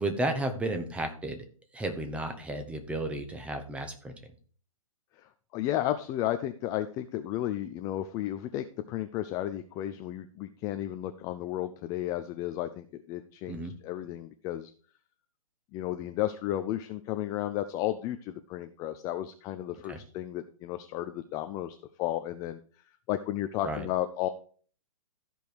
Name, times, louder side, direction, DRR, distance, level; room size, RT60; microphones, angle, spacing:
voice 1, 0.0-1.4 1.7-4.1 13.5-13.7 19.9-20.0 23.6-23.9, right 2 dB, 5° right, 6 dB, 1.0 m, -33 dB
voice 2, 5.5-14.7 15.7-22.6 23.1-24.3, left 13 dB, 20° left, 9 dB, 0.4 m, -33 dB
13.0 x 5.3 x 4.6 m, 0.43 s
hypercardioid pair, 145°, 19 cm